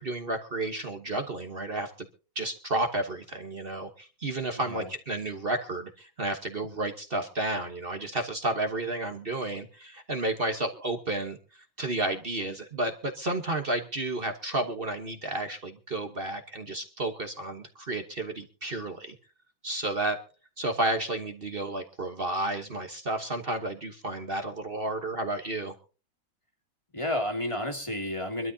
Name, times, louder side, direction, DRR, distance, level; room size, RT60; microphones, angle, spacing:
voice 1, 0.0-1.9 2.3-11.4 11.8-19.1 19.6-20.2 20.6-25.7, right 2 dB, 35° right, 6 dB, 1.1 m, -31 dB
voice 2, 4.6-4.9 26.9-28.5, left 1 dB, 15° left, 3 dB, 2.2 m, -31 dB
25.0 x 12.5 x 2.7 m, 0.35 s
omnidirectional pair, 2.2 m